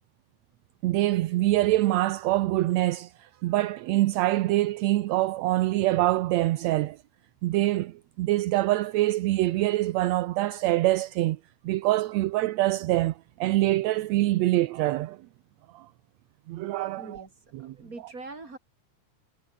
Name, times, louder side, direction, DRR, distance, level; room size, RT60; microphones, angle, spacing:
voice 1, 0.8-7.0 7.4-11.4 11.6-15.2 15.7-15.9 16.5-17.3 17.5-17.7, right 16 dB, 75° right, 1.8 m, -25 dB
voice 2, 17.0-17.3 17.6-18.6, right 3 dB, 25° right, 5.2 m, -42 dB
omnidirectional pair, 3.6 m